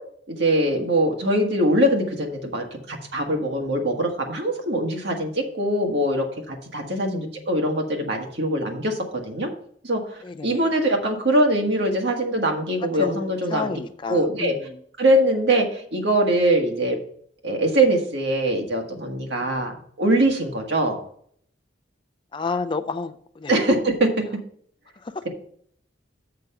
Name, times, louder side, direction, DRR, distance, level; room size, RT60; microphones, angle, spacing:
voice 1, 0.3-9.5 9.8-13.7 14.1-14.5 15.0-17.0 17.4-21.0 23.5-24.1, right 1 dB, 70° right, 1 dB, 1.6 m, -22 dB
voice 2, 6.9-7.4 10.2-10.7 13.0-14.8 22.3-23.5 25.0-25.3, left 4 dB, 25° left, 9 dB, 0.4 m, -31 dB
6.7 x 5.0 x 6.8 m, 0.63 s
head